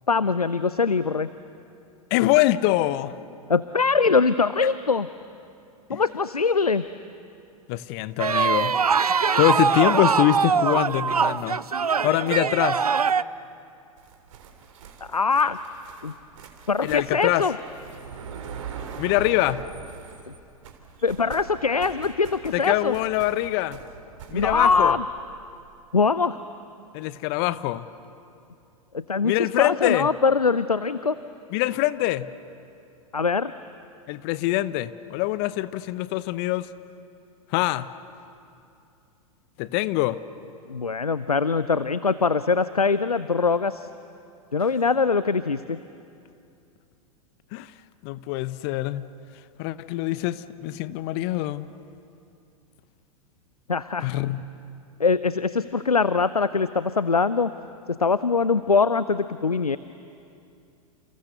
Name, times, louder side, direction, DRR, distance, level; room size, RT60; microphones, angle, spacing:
voice 1, 0.1-1.3 3.5-5.1 5.9-6.8 15.1-15.6 16.0-16.1 16.7-17.5 21.0-22.9 24.3-25.0 25.9-26.4 28.9-31.1 33.1-33.5 40.7-43.9 44.5-45.8 53.7-54.1 55.0-57.5 58.0-59.8, left 4 dB, 90° left, 15 dB, 0.6 m, -22 dB
voice 2, 2.1-3.2 5.9-6.0 7.7-8.8 9.4-11.6 12.0-12.8 16.8-17.4 19.0-19.6 22.5-23.8 24.3-25.0 26.9-27.9 29.2-30.1 31.5-32.3 34.1-36.7 37.5-37.9 39.6-40.2 47.5-47.7 48.0-49.1 49.6-51.7 54.0-54.4, left 16 dB, 45° left, 15 dB, 0.9 m, -24 dB
sound 1, 8.2-13.2, right 6 dB, 85° right, 0.6 m, -22 dB
sound 2, 14.0-20.4 20.6-24.8, right 6 dB, 60° right, 3.5 m, -41 dB
29.5 x 29.0 x 6.8 m, 2.6 s
figure-of-eight pair, 95°, 19 cm